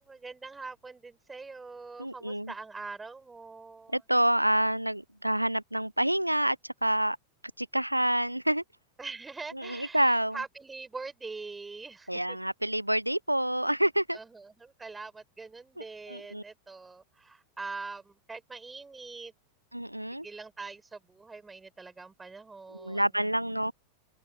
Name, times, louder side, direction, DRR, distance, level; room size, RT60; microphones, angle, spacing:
voice 1, 0.0-4.0 9.0-12.4 14.1-19.3 20.2-23.3, right 4 dB, 10° right, 7.7 m, -43 dB
voice 2, 2.0-2.5 3.9-7.2 7.6-8.6 9.5-10.4 12.1-14.2 16.1-16.4 19.7-20.2 22.7-23.7, right 1 dB, 90° right, 0.9 m, -28 dB
open air
figure-of-eight pair, 90°, 0 cm